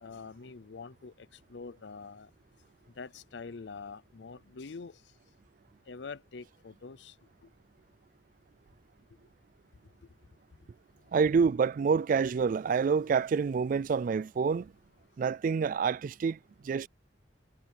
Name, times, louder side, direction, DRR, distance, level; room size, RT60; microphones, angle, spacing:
voice 1, 0.0-2.3 3.0-5.0 5.9-7.1 7.4-7.5, left 4 dB, 70° left, 0.6 m, -45 dB
voice 2, 11.1-14.7 15.2-16.4 16.6-16.9, right 5 dB, 45° right, 0.3 m, -27 dB
head